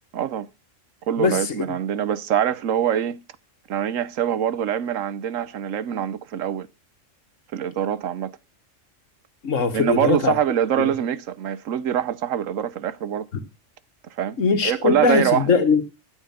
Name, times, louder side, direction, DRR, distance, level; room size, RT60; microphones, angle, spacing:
voice 1, 0.1-0.5 1.1-3.2 3.7-6.7 7.5-8.3 9.7-13.3 14.2-15.6, right 9 dB, 85° right, 1.2 m, -24 dB
voice 2, 9.4-10.3 10.8-10.9 14.4-15.8, left 5 dB, 80° left, 1.8 m, -20 dB
13.0 x 7.8 x 5.7 m
omnidirectional pair, 1.3 m